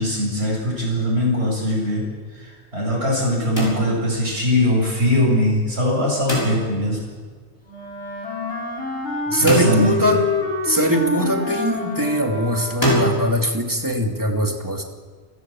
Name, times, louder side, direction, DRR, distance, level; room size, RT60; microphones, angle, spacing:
voice 1, 0.0-2.0 2.7-7.0 9.4-10.1, left 1 dB, 65° right, -4 dB, 8.3 m, -21 dB
sound 1, 3.6-4.3 6.3-7.0 9.5-10.3 12.8-13.2, equal, 20° left, 6.8 m, -23 dB
Wind instrument woodwind instrument, 7.7-13.1, left 2 dB, 70° left, 5.8 m, -27 dB
voice 2, 9.3-10.2 10.6-14.8, equal, 15° right, 2 dB, 2.5 m, -21 dB
29.0 x 16.0 x 7.5 m, 1.5 s
omnidirectional pair, 1.2 m